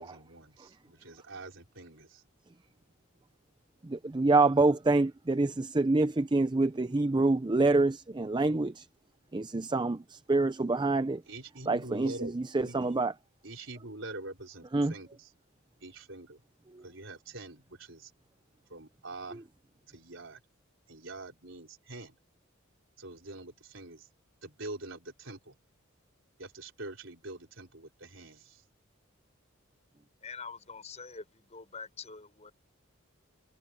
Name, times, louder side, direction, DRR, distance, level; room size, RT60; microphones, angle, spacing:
voice 1, 0.0-2.2 11.3-12.4 12.6-12.9 13.4-15.3 15.8-16.4 16.8-18.1 18.7-19.4 19.9-20.4 20.9-22.2 23.0-24.1 24.4-25.5 26.4-28.6, right 2 dB, 65° right, 5.1 m, -45 dB
voice 2, 3.8-8.9 9.3-11.2 11.7-13.1 14.7-14.9 16.7-16.8 19.3-19.4, right 2 dB, 20° right, 0.5 m, -26 dB
voice 3, 30.2-32.5, left 5 dB, 35° left, 5.8 m, -45 dB
head